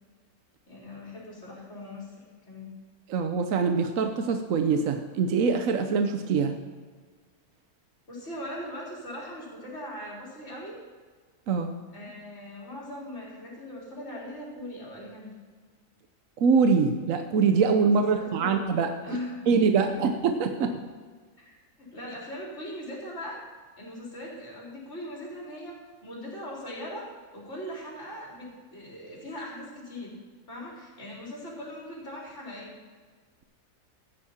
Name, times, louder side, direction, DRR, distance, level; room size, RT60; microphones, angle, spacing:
voice 1, 0.7-2.1 2.5-2.7 8.1-10.8 11.9-15.3 18.1-18.5 19.0-19.4 19.7-20.0 21.4-23.4 23.8-27.1 27.3-30.1 30.5-32.8, left 1 dB, 45° left, -4 dB, 4.0 m, -40 dB
voice 2, 3.1-6.6 11.5-11.7 16.4-18.9 19.5-20.8, right 5 dB, 65° right, 6 dB, 1.1 m, -24 dB
14.5 x 9.6 x 4.3 m, 1.5 s
omnidirectional pair, 1.6 m